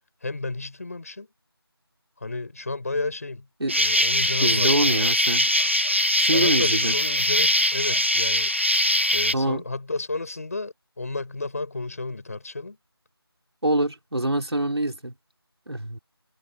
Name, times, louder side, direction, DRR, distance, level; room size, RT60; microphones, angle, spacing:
voice 1, 0.2-1.3 2.2-3.5 3.8-5.3 6.3-8.5 9.1-12.8, left 3 dB, 35° left, 7.8 m, -32 dB
Insect, 3.7-9.3, equal, 30° right, 0.4 m, -22 dB
voice 2, 4.4-5.5 6.2-7.0 9.3-9.6 13.6-15.1 15.7-16.0, right 1 dB, 90° right, 3.9 m, -25 dB
figure-of-eight pair, 175°, 13 cm